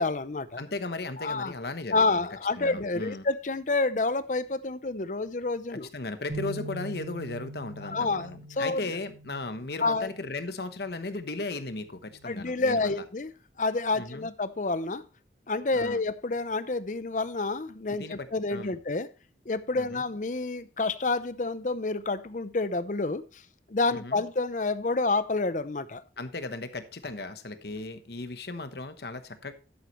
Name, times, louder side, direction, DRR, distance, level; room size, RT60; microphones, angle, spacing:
voice 1, 0.0-0.6 1.2-1.5 1.9-5.9 7.8-8.3 8.6-8.8 9.8-10.1 12.2-13.3 13.6-15.0 15.5-19.1 19.5-23.4 23.7-26.0, left 3 dB, 45° left, 0.6 m, -28 dB
voice 2, 0.6-2.3 2.6-3.3 5.7-13.0 13.9-14.3 15.7-16.0 18.0-18.8 19.8-20.1 23.9-24.2 26.2-29.5, left 3 dB, 60° left, 1.1 m, -36 dB
sound 1, 6.3-10.6 11.0-11.3 12.1-12.5, right 2 dB, 60° right, 6.2 m, -43 dB
11.5 x 8.1 x 3.1 m
head